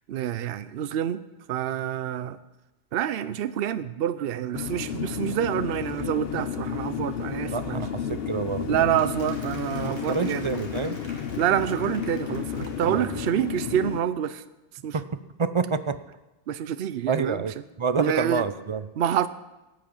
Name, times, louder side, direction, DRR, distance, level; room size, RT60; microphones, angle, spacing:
voice 1, 0.1-1.2 1.5-2.4 2.9-7.8 8.7-10.5 11.4-14.4 14.8-15.0 16.5-17.5 18.0-18.4 19.0-19.3, right 10 dB, 65° right, 13 dB, 0.8 m, -27 dB
sound 1, 4.5-14.0, left 8 dB, 65° left, 0.9 m, -32 dB
voice 2, 7.5-8.9 9.8-11.0 12.8-13.2 14.9-16.0 17.1-18.9, right 5 dB, 40° right, 13 dB, 0.5 m, -28 dB
Applause, 8.7-13.6, left 1 dB, 25° left, 2.6 m, -48 dB
17.5 x 6.2 x 8.7 m, 1.0 s
omnidirectional pair, 1.1 m